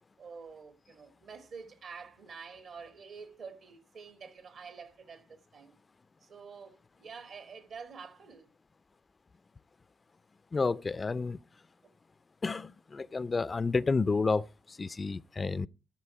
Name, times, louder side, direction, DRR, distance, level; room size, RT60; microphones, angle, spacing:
voice 1, 0.2-5.8 6.2-8.5 11.8-11.9, right 5 dB, 65° right, 1.9 m, -48 dB
voice 2, 10.5-11.4 12.4-15.7, left 4 dB, 35° left, 0.5 m, -30 dB
13.0 x 6.8 x 4.7 m
supercardioid pair, 60°, 0 cm